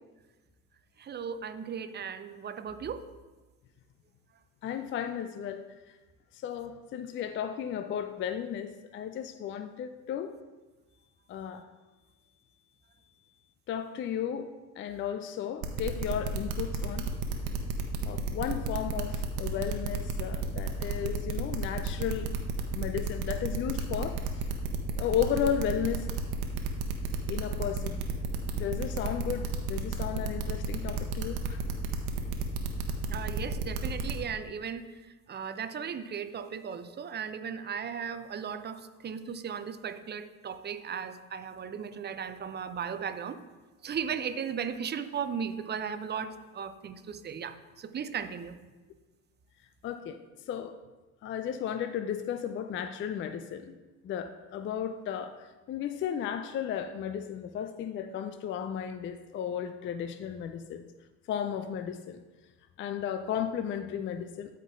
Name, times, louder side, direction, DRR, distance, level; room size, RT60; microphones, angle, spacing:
voice 1, 1.0-3.0 33.1-34.9 35.3-43.4 43.8-48.6, right 7 dB, 25° right, 10 dB, 0.7 m, -36 dB
voice 2, 4.6-5.7 6.4-10.3 11.3-11.6 13.7-14.5 14.8-17.1 18.0-22.3 22.7-24.5 25.0-26.1 27.3-28.0 28.5-31.6 49.8-50.2 50.5-50.7 51.2-53.7 54.0-55.4 55.7-60.8 61.3-62.2 62.8-64.6, left 9 dB, 30° left, 10 dB, 0.4 m, -34 dB
sound 1, 15.6-34.1, right 5 dB, 55° right, 1.1 m, -32 dB
12.5 x 4.6 x 3.6 m, 1.2 s
hypercardioid pair, 65°, 44 cm